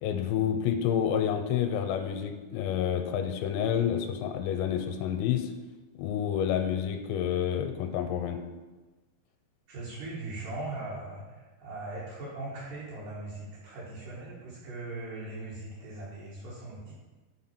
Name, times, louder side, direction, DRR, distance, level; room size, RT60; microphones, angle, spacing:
voice 1, 0.0-5.5 6.0-8.4, left 9 dB, 85° left, 6 dB, 2.8 m, -29 dB
voice 2, 9.7-16.9, right 2 dB, 65° right, -8 dB, 2.5 m, -39 dB
6.3 x 3.9 x 4.3 m, 1.2 s
omnidirectional pair, 5.1 m